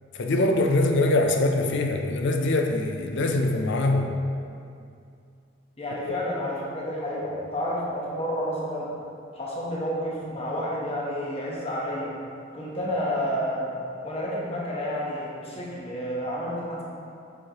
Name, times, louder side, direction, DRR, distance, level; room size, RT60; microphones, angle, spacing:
voice 1, 0.2-4.1, left 2 dB, 60° left, 3 dB, 0.5 m, -23 dB
voice 2, 5.8-8.9 9.3-12.2 12.5-16.8, equal, 30° left, -4 dB, 1.0 m, -30 dB
7.0 x 4.7 x 2.9 m, 2.4 s
head